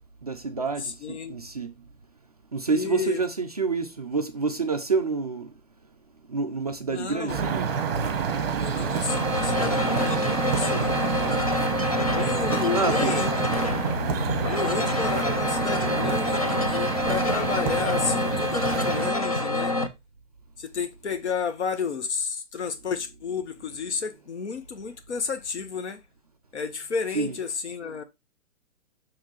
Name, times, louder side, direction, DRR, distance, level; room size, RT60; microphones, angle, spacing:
voice 1, 0.2-1.7 2.5-5.5 6.3-7.7 12.7-13.2 27.1-27.3, right 4 dB, 30° right, 0.5 m, -28 dB
voice 2, 0.8-1.3 2.7-3.2 6.8-7.4 8.6-11.5 12.1-13.5 14.5-19.8 20.6-26.0 26.5-28.0, left 5 dB, 60° left, 1.4 m, -32 dB
sound 1, 7.3-19.1, right 6 dB, 45° right, 1.5 m, -29 dB
sound 2, 9.1-19.9, left 2 dB, 30° left, 0.5 m, -27 dB
6.3 x 5.0 x 4.4 m
hypercardioid pair, 175°, 39 cm